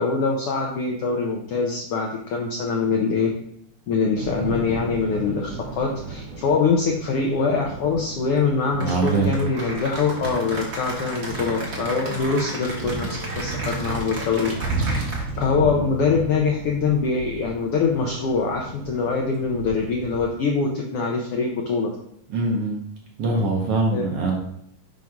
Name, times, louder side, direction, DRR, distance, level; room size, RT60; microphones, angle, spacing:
voice 1, 0.0-3.3 3.9-14.5 14.8-21.9 23.9-24.0, left 4 dB, 75° left, 0 dB, 1.3 m, -24 dB
Thunder / Rain, 4.2-20.3, right 3 dB, 85° right, 2.6 m, -34 dB
Cheering / Applause, 8.8-15.5, right 1 dB, 45° right, 1.1 m, -34 dB
voice 2, 8.8-9.3 22.3-22.8 23.2-24.4, right 3 dB, 65° right, 0 dB, 1.7 m, -22 dB
6.1 x 5.3 x 3.6 m, 0.71 s
omnidirectional pair, 3.5 m